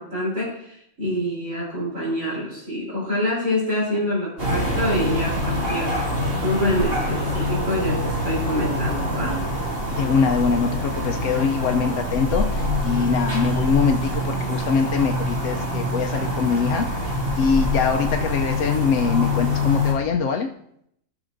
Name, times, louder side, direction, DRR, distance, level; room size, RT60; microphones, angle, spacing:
voice 1, 0.0-9.4, equal, 90° right, -10 dB, 3.9 m, -26 dB
sound 1, 4.4-19.9, left 1 dB, 45° right, 2.5 m, -25 dB
voice 2, 10.0-20.5, left 6 dB, 70° left, 3 dB, 0.9 m, -23 dB
16.5 x 6.0 x 2.6 m, 0.72 s
omnidirectional pair, 1.4 m